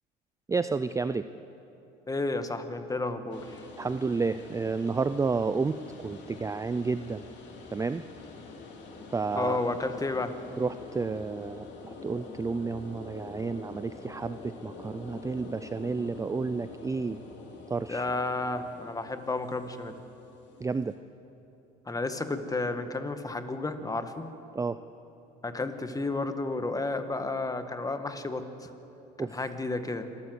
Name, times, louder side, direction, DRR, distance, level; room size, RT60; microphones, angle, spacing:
voice 1, 0.5-1.3 3.8-7.3 7.7-8.0 9.1-9.6 10.6-17.2 17.7-18.1 20.6-20.9 24.6-24.8 29.2-29.4, right 4 dB, 15° right, 12 dB, 0.5 m, -31 dB
voice 2, 2.1-3.6 9.3-10.4 17.9-20.0 21.8-24.3 25.4-28.7 29.2-30.1, left 2 dB, 15° left, 8 dB, 1.7 m, -32 dB
sound 1, 3.3-21.0, left 3 dB, 60° left, 3.6 m, -46 dB
26.5 x 13.0 x 8.0 m, 2.9 s
supercardioid pair, 85°, 21 cm